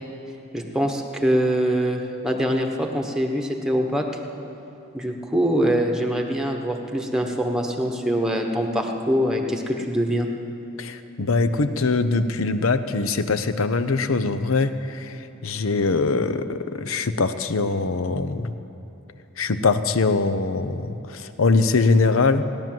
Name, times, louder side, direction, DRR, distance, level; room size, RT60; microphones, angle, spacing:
voice 1, 0.5-4.1 4.9-10.3, equal, 5° right, 2 dB, 1.1 m, -23 dB
voice 2, 10.8-18.5 19.4-22.5, left 3 dB, 80° left, 11 dB, 0.8 m, -22 dB
17.5 x 10.5 x 7.6 m, 2.7 s
head